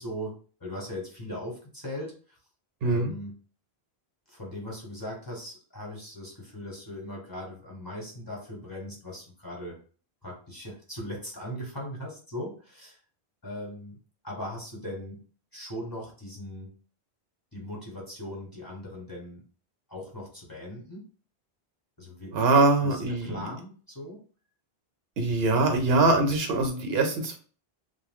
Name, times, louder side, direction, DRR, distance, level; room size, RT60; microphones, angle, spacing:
voice 1, 0.0-2.4 2.8-3.3 4.3-9.8 10.2-13.0 13.4-14.0 14.2-15.2 15.5-16.8 17.5-19.4 19.9-21.0 22.0-22.4 22.8-24.2, left 1 dB, 20° left, -3 dB, 0.8 m, -39 dB
voice 2, 2.8-3.1 22.3-23.5 25.2-27.4, right 3 dB, 70° right, 5 dB, 0.8 m, -23 dB
2.8 x 2.0 x 3.4 m, 0.40 s
omnidirectional pair, 1.1 m